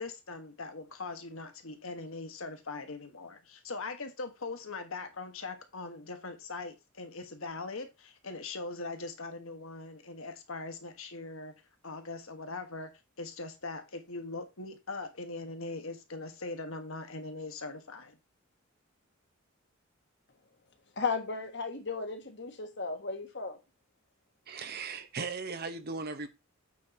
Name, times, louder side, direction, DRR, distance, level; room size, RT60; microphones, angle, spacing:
voice 1, 0.0-11.5 11.8-12.9 13.2-18.2, left 3 dB, 70° left, 1.4 m, -41 dB
voice 2, 21.0-23.6, left 4 dB, 55° left, 1.3 m, -35 dB
voice 3, 24.5-26.3, right 4 dB, 45° right, 0.8 m, -37 dB
8.5 x 4.3 x 4.2 m
head